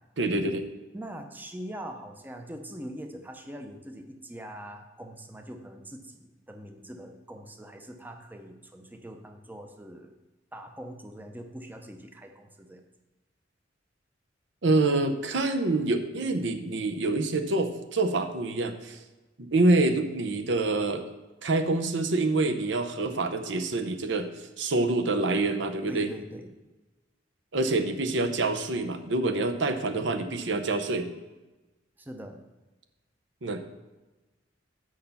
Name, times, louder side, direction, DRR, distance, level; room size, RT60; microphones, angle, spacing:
voice 1, 0.2-0.7 14.6-19.0 19.4-21.0 21.4-24.3 24.6-26.1 27.5-31.1 33.4-33.6, right 2 dB, 70° right, 7 dB, 0.8 m, -26 dB
voice 2, 0.9-10.2 10.5-12.8 25.9-26.5 32.0-32.4, right 1 dB, 10° right, 4 dB, 0.6 m, -42 dB
6.4 x 5.4 x 7.0 m, 1.1 s
head